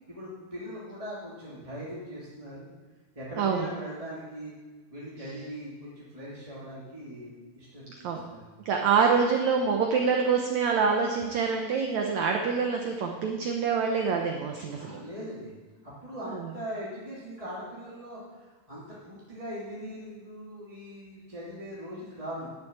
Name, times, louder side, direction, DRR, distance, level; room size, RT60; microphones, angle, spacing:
voice 1, 0.1-2.7 3.1-4.5 4.9-8.5 14.7-15.5 16.0-22.5, equal, 10° right, -8 dB, 1.9 m, -40 dB
voice 2, 3.4-3.7 8.0-8.2 8.7-15.0 16.3-16.5, right 5 dB, 70° right, 2 dB, 1.8 m, -26 dB
11.5 x 7.1 x 8.7 m, 1.3 s
omnidirectional pair, 4.4 m